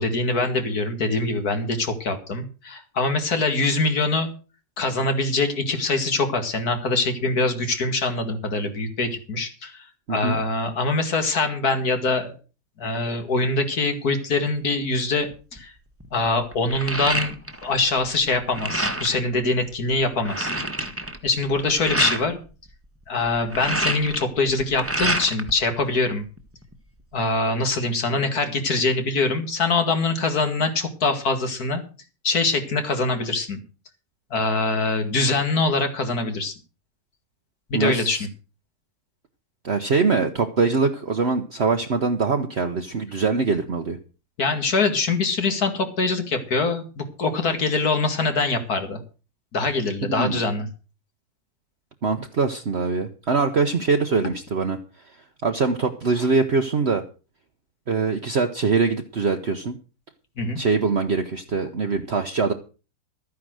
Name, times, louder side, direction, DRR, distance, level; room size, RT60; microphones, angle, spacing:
voice 1, 0.0-4.3 4.8-12.4 12.8-15.7 16.1-17.4 17.6-20.5 20.8-20.9 21.2-22.4 23.1-26.2 27.1-31.8 32.2-33.6 34.3-36.5 37.7-38.3 44.4-49.0 49.5-50.7 60.4-60.6, left 3 dB, 70° left, 7 dB, 2.6 m, -24 dB
sound 1, 15.3-15.6 16.0-17.8 18.0-19.2 19.7-19.8 20.0-22.2 23.3-25.5 25.9-26.7, right 1 dB, 10° right, 1.4 m, -27 dB
voice 2, 37.7-38.3 39.6-44.0 50.1-50.4 52.0-54.8 55.4-57.0 57.9-59.7 60.6-62.5, right 4 dB, 45° right, 5 dB, 1.1 m, -23 dB
13.0 x 9.7 x 6.4 m, 0.35 s
omnidirectional pair, 1.6 m